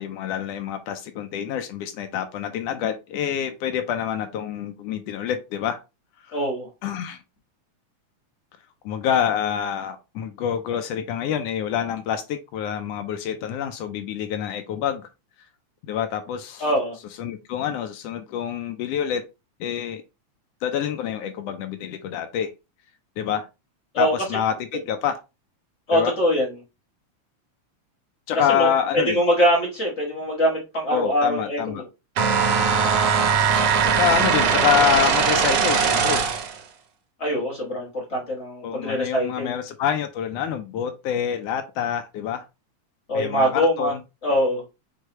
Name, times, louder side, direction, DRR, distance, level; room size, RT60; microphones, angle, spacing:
voice 1, 0.0-5.8 6.8-7.2 8.8-15.1 15.8-16.6 17.2-19.2 19.6-20.0 20.6-22.5 23.2-23.4 24.0-25.2 25.9-26.1 28.3-29.2 30.9-31.8 33.5-36.2 38.6-42.4 43.1-44.0, left 9 dB, 85° left, 1.4 m, -26 dB
voice 2, 6.3-6.7 16.6-17.0 23.9-24.1 25.9-26.6 28.5-31.8 37.2-39.5 43.1-43.9 44.2-44.6, equal, 35° left, 1.2 m, -23 dB
sound 1, 32.2-36.6, right 6 dB, 70° right, 1.5 m, -20 dB
6.3 x 2.2 x 2.9 m
omnidirectional pair, 3.3 m